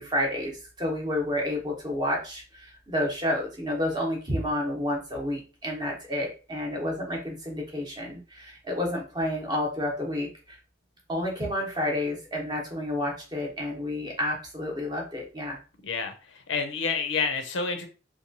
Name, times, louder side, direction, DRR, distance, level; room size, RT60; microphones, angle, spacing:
voice 1, 0.0-10.6 11.1-15.6, left 1 dB, 20° right, 0 dB, 0.8 m, -30 dB
voice 2, 15.8-17.9, left 5 dB, 75° left, 6 dB, 0.5 m, -29 dB
2.9 x 2.2 x 2.6 m, 0.34 s
head